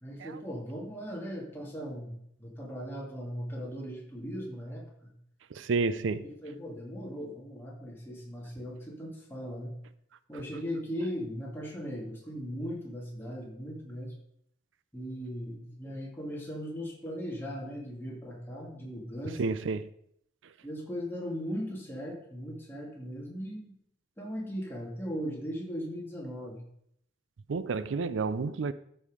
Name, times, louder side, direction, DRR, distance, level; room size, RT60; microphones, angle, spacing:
voice 1, 0.0-5.1 6.2-9.7 10.3-14.1 14.9-19.5 20.6-23.7 24.2-26.6, equal, 10° left, 2.2 m, -38 dB
voice 2, 5.5-6.2 19.4-19.9 27.5-28.7, right 4 dB, 80° right, 0.4 m, -30 dB
13.0 x 5.5 x 4.9 m
head